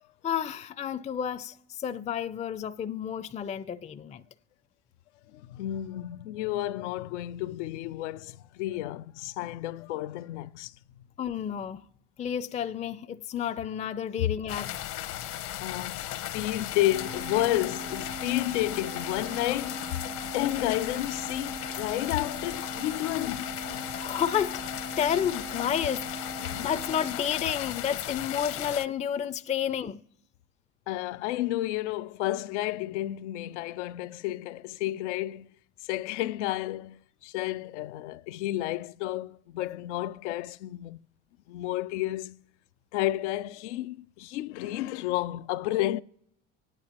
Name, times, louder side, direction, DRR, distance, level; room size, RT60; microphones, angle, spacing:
voice 1, 0.2-4.2 11.2-11.9 12.2-14.7 24.0-24.6 25.0-30.0, left 9 dB, 20° left, 0.4 m, -31 dB
voice 2, 5.3-10.7 14.2-14.3 15.6-20.0 20.3-23.9 26.4-26.7 30.9-35.5 35.8-41.0 41.5-42.4 42.9-46.0, left 15 dB, 85° left, 0.5 m, -31 dB
sound 1, 14.5-28.9, left 13 dB, 65° left, 0.8 m, -36 dB
sound 2, 16.9-27.3, right 2 dB, 75° right, 1.0 m, -41 dB
25.0 x 9.0 x 2.9 m
hypercardioid pair, 75°, 34 cm